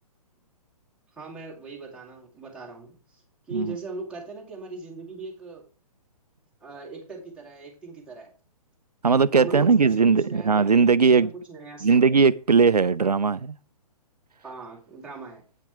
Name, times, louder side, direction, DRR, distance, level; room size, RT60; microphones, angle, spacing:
voice 1, 1.1-3.2 3.5-5.6 6.6-8.3 9.4-12.3 14.4-15.4, right 3 dB, 5° right, 2.3 m, -39 dB
voice 2, 9.0-11.3 11.8-13.5, right 5 dB, 85° right, 0.4 m, -19 dB
8.3 x 5.8 x 4.5 m
figure-of-eight pair, 125°, 20 cm